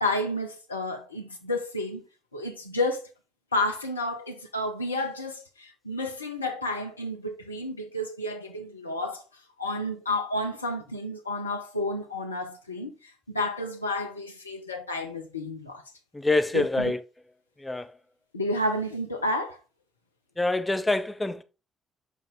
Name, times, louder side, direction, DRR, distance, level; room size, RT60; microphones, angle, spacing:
voice 1, 0.0-2.1 2.3-3.1 3.5-9.2 9.6-15.8 16.5-16.9 18.3-19.6, left 1 dB, 90° left, 0.6 m, -31 dB
voice 2, 16.1-17.0 17.6-17.9 20.4-21.4, left 2 dB, 15° left, 0.9 m, -26 dB
6.4 x 5.1 x 3.5 m
figure-of-eight pair, 40°, 0 cm